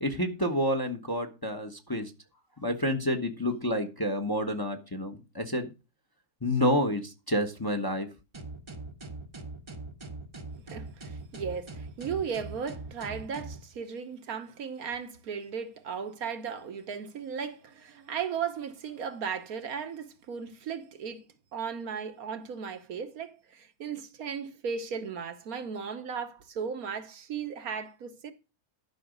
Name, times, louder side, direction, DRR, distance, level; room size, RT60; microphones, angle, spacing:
voice 1, 0.0-2.1 2.6-5.7 6.4-8.1, equal, 15° left, 1.0 m, -29 dB
sound 1, 8.3-13.6, right 2 dB, 20° right, 0.9 m, -42 dB
voice 2, 10.7-21.2 21.5-28.3, right 6 dB, 65° right, 1.4 m, -36 dB
12.0 x 5.9 x 5.2 m
omnidirectional pair, 1.7 m